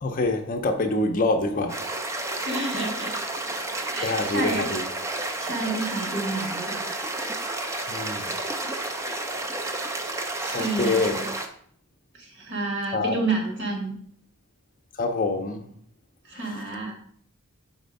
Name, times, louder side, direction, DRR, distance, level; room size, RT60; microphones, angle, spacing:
voice 1, 0.0-1.8 4.0-4.8 7.9-8.3 10.5-11.2 12.9-13.2 15.0-15.6, left 2 dB, 40° left, 0.5 m, -25 dB
sound 1, 1.7-11.5, right 2 dB, 15° right, 0.4 m, -31 dB
voice 2, 2.4-3.5 3.9-4.7 5.2-7.0 9.8-10.0 10.4-11.3 12.1-13.9 16.2-16.9, right 2 dB, 55° right, 1.6 m, -30 dB
4.4 x 4.2 x 5.2 m
head